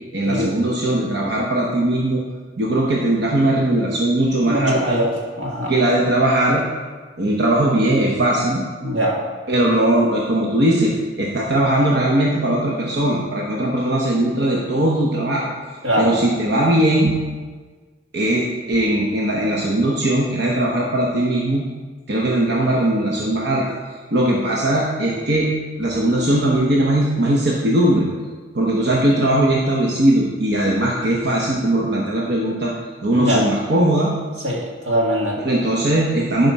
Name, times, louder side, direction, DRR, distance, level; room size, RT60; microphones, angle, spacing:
voice 1, 0.1-2.2 2.6-5.0 5.7-6.6 7.2-8.6 9.5-15.5 16.0-17.2 18.1-21.6 22.1-23.6 24.1-25.5 25.8-28.1 28.5-32.7 33.0-34.1 35.4-36.5, right 1 dB, 65° right, -3 dB, 1.0 m, -19 dB
voice 2, 4.4-5.1 5.4-5.7 8.8-9.2 15.8-16.1 33.2-33.4 34.4-35.4, right 1 dB, 90° right, -2 dB, 1.9 m, -21 dB
11.0 x 5.3 x 4.1 m, 1.4 s
head